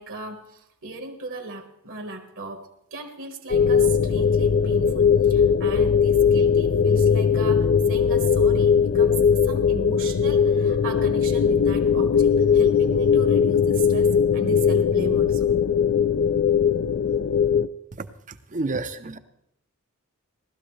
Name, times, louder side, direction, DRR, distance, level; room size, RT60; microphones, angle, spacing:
voice 1, 0.0-15.5, right 3 dB, 60° right, 4 dB, 1.5 m, -37 dB
sound 1, 3.5-17.7, left 7 dB, 55° left, 0.4 m, -19 dB
voice 2, 18.5-19.2, right 3 dB, 35° right, 10 dB, 0.7 m, -28 dB
18.5 x 13.0 x 3.3 m, 0.78 s
head